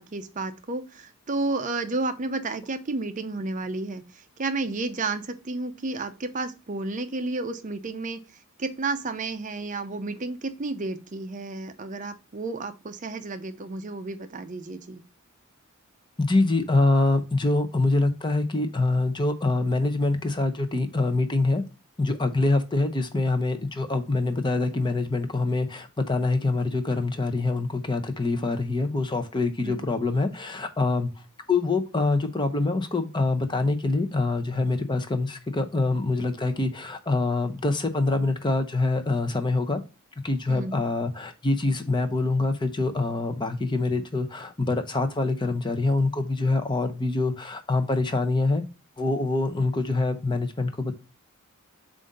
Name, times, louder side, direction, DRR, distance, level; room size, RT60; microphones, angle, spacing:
voice 1, 0.0-8.2 8.6-15.0 29.6-29.8 40.5-40.8, right 3 dB, 35° right, 0.5 m, -31 dB
voice 2, 16.2-21.6 22.0-31.1 31.5-39.8 40.2-48.6 49.0-50.9, left 2 dB, 20° left, 0.6 m, -25 dB
7.4 x 2.6 x 5.2 m
head